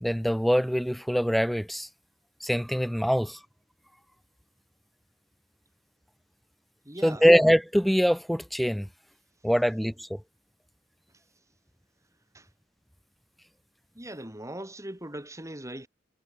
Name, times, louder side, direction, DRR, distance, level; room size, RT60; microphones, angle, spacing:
voice 1, 0.0-1.9 2.4-3.4 7.0-8.9 9.4-10.2, equal, ahead, 0.7 m, -23 dB
voice 2, 6.8-7.3 12.3-12.5 14.0-15.9, right 1 dB, 15° right, 5.4 m, -40 dB
head